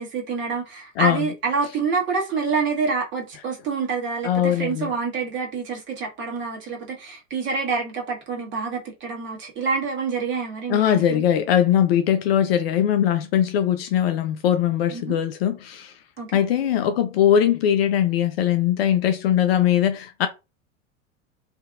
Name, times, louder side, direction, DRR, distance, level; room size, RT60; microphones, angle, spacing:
voice 1, 0.0-11.2 14.9-15.2 16.2-16.4, right 5 dB, 30° right, 1.3 m, -27 dB
voice 2, 1.0-1.3 4.2-4.9 10.7-15.9 16.3-20.3, left 10 dB, 50° left, 0.5 m, -21 dB
2.6 x 2.6 x 2.4 m
figure-of-eight pair, 85°, 39 cm